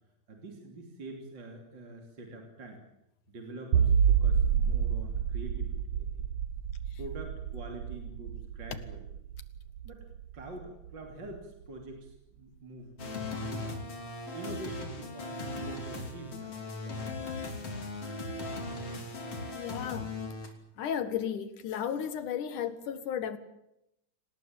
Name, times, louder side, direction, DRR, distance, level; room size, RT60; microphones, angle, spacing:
voice 1, 0.3-2.8 3.3-6.3 7.0-9.1 9.8-10.1 10.3-13.8 14.3-16.6 16.8-17.7, right 2 dB, 35° right, 2 dB, 3.5 m, -46 dB
sound 1, 3.7-10.9, right 7 dB, 60° right, 1.6 m, -29 dB
sound 2, 13.0-20.5, left 2 dB, 50° left, 4.1 m, -38 dB
voice 2, 19.5-20.1 20.8-23.4, left 9 dB, 75° left, 12 dB, 3.1 m, -34 dB
26.5 x 19.0 x 8.9 m, 0.85 s
omnidirectional pair, 3.7 m